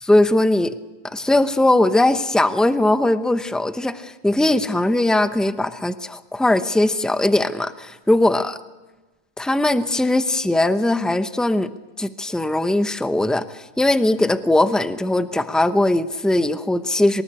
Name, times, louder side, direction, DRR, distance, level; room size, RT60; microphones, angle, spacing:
voice 1, 0.0-0.7 1.0-8.6 9.4-11.7 12.0-17.2, left 1 dB, ahead, 10 dB, 0.4 m, -20 dB
24.0 x 20.0 x 8.7 m, 1.2 s
omnidirectional pair, 1.6 m